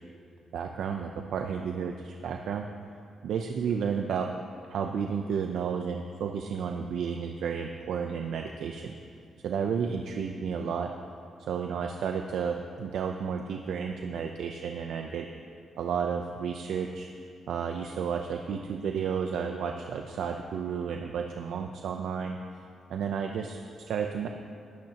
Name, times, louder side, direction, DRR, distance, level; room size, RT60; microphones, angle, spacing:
voice 1, 0.5-2.7 3.2-4.3 4.7-8.9 9.4-10.9 11.4-15.3 15.8-17.1 17.5-22.4 22.9-24.3, right 6 dB, 80° right, 4 dB, 0.6 m, -32 dB
21.0 x 12.0 x 3.0 m, 2.3 s
cardioid pair, 130°, 0 cm